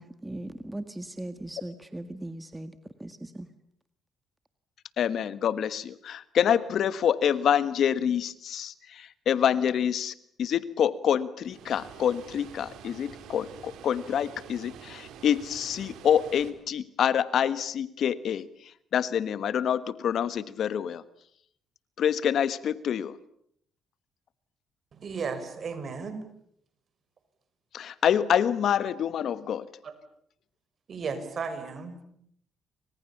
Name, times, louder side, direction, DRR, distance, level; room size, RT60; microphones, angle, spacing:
voice 1, 0.0-3.5, right 1 dB, 10° right, 10 dB, 1.8 m, -39 dB
voice 2, 5.0-18.4 18.9-21.0 22.0-23.2 27.7-29.7, left 9 dB, 65° left, 15 dB, 1.4 m, -26 dB
Water, 11.4-16.5, right 8 dB, 85° right, 4.1 m, -47 dB
voice 3, 24.9-26.2 29.8-29.9 30.9-32.0, right 5 dB, 50° right, 10 dB, 5.8 m, -34 dB
29.5 x 25.5 x 7.3 m, 0.68 s
cardioid pair, 90°, 0 cm